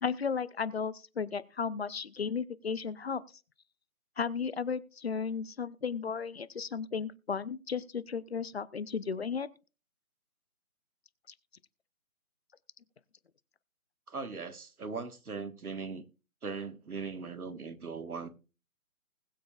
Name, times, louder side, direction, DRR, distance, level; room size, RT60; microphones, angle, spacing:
voice 1, 0.0-3.2 4.2-9.5, left 6 dB, 45° left, 0.6 m, -34 dB
voice 2, 14.1-16.0 16.4-18.3, right 4 dB, 85° right, 1.5 m, -39 dB
20.5 x 7.5 x 2.3 m
figure-of-eight pair, 155°, 43 cm